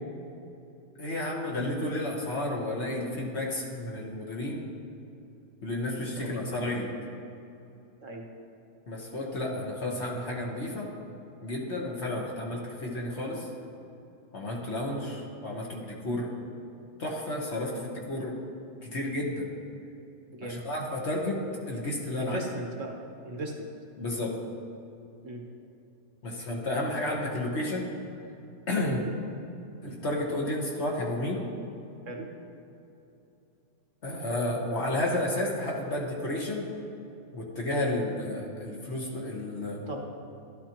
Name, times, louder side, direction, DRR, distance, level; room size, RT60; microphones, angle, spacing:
voice 1, 1.0-4.6 5.6-6.9 8.9-10.9 11.4-13.5 14.3-16.3 17.0-18.4 18.8-19.5 20.4-22.4 24.0-24.4 26.2-27.9 28.7-29.0 29.8-31.5 34.0-36.7 37.3-39.9, left 1 dB, 45° left, -1 dB, 1.4 m, -32 dB
voice 2, 22.2-22.9 23.2-23.7 25.2-25.4 28.8-29.1 32.1-32.3 37.7-37.9 39.9-40.1, right 1 dB, 55° right, 1 dB, 1.3 m, -37 dB
12.5 x 12.0 x 2.9 m, 2.8 s
omnidirectional pair, 1.7 m